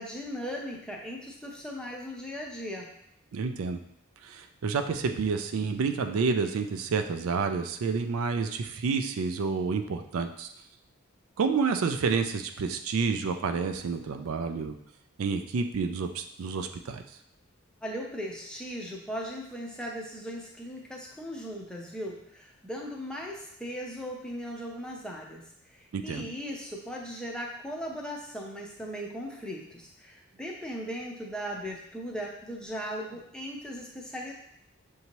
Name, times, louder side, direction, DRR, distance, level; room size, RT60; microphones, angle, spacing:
voice 1, 0.0-2.9 17.8-34.3, equal, 5° left, -2 dB, 0.5 m, -38 dB
voice 2, 3.3-3.8 4.2-10.5 11.4-14.7 15.2-17.0 25.9-26.3, right 5 dB, 75° right, 7 dB, 0.4 m, -29 dB
6.6 x 2.7 x 3.0 m, 0.74 s
head